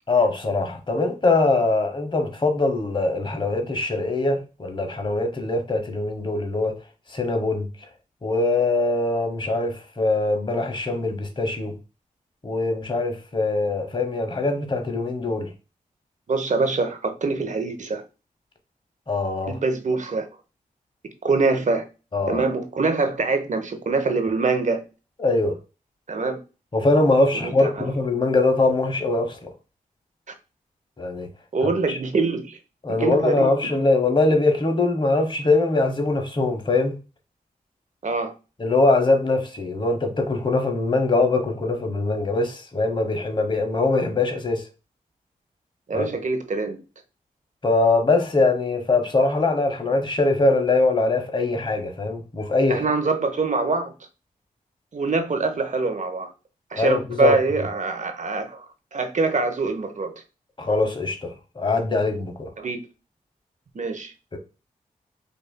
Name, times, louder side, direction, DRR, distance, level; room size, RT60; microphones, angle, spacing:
voice 1, 0.1-6.7 7.1-7.7 8.2-11.8 12.4-15.5 19.1-19.6 22.1-22.4 25.2-25.6 26.7-29.4 31.0-31.3 31.9-32.0 32.8-37.0 38.6-44.6 45.9-46.1 47.6-52.9 56.7-57.4 60.6-62.5 64.3-64.4, left 3 dB, 35° left, 1.0 m, -22 dB
voice 2, 16.3-18.0 19.5-20.3 21.2-21.8 22.3-24.8 26.1-26.4 27.4-27.9 31.5-32.6 32.9-33.7 38.0-38.3 45.9-46.8 52.7-53.9 54.9-56.3 56.7-60.1 62.6-62.8 63.7-64.1, right 3 dB, 55° right, 0.8 m, -24 dB
5.3 x 2.5 x 2.2 m
cardioid pair, 50°, 15 cm